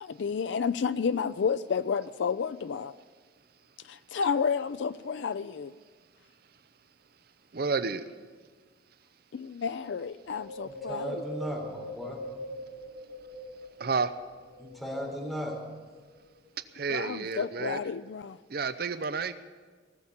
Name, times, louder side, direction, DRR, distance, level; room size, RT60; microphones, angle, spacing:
voice 1, 0.0-3.0 3.8-5.7 9.3-11.2 16.9-18.4, left 6 dB, 65° left, 0.4 m, -31 dB
voice 2, 7.5-8.0 13.8-14.1 16.8-17.8 18.5-19.3, right 5 dB, 50° right, 0.6 m, -30 dB
Wind, 10.3-13.9 14.4-15.6 16.2-16.3, right 1 dB, 85° left, 6.9 m, -41 dB
voice 3, 10.6-12.2 14.6-15.6, equal, ahead, 3.8 m, -36 dB
18.5 x 7.2 x 9.8 m
head